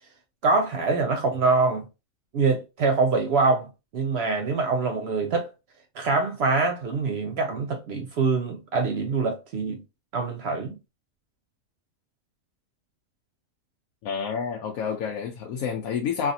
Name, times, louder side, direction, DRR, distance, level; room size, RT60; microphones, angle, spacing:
voice 1, 0.4-1.9 2.3-3.7 3.9-5.5 6.0-9.8 10.1-10.7, right 4 dB, 65° right, 0.7 m, -24 dB
voice 2, 14.0-16.3, left 6 dB, 85° left, 1.0 m, -29 dB
3.2 x 2.5 x 2.6 m
omnidirectional pair, 1.5 m